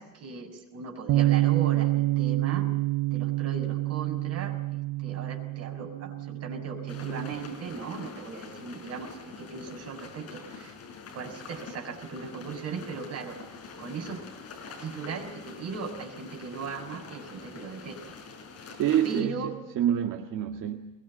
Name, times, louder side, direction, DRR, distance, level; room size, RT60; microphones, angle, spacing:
voice 1, 0.0-2.7 3.1-10.7 11.1-13.4 13.8-14.2 14.8-18.1 19.0-19.6, right 4 dB, 50° right, 3 dB, 6.2 m, -38 dB
Bass guitar, 1.1-7.3, right 17 dB, 90° right, 0.8 m, -27 dB
sound 1, 6.9-19.2, left 5 dB, 50° left, 5.9 m, -45 dB
voice 2, 18.8-20.9, right 10 dB, 75° right, 3 dB, 1.9 m, -27 dB
23.0 x 22.5 x 10.0 m, 1.0 s
cardioid pair, 170°, 32 cm